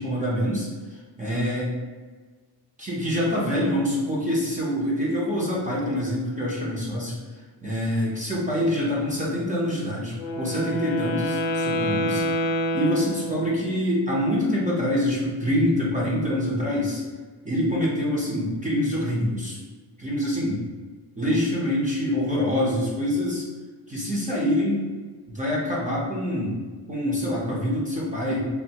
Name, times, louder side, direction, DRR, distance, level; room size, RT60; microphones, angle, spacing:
voice 1, 0.0-1.7 2.8-7.1 7.6-12.4 12.7-17.0 17.4-19.6 20.0-20.6 21.2-23.4 23.9-24.9 25.3-26.6 26.9-28.4, left 1 dB, 20° right, -5 dB, 0.6 m, -25 dB
Wind instrument woodwind instrument, 10.1-13.8, equal, 80° left, 0.6 m, -27 dB
3.3 x 2.4 x 2.8 m, 1.4 s
wide cardioid pair, 150°, 44 cm